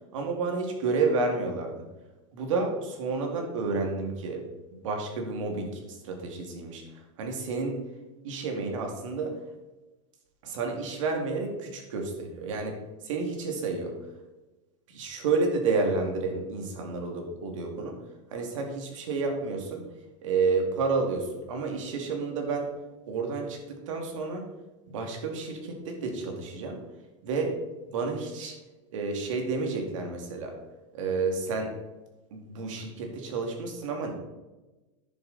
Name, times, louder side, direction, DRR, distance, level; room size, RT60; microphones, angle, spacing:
voice 1, 0.1-1.8 2.3-4.4 4.8-6.8 7.2-7.8 8.2-9.4 10.4-12.8 13.0-13.9 14.9-18.0 18.3-19.8 20.2-22.7 23.1-24.5 24.9-26.8 27.2-27.5 27.9-28.6 28.9-30.6 30.9-31.7 32.3-34.1, right 4 dB, 85° right, 2 dB, 2.4 m, -30 dB
11.0 x 7.2 x 4.1 m, 1.1 s
supercardioid pair, 155°, 16 cm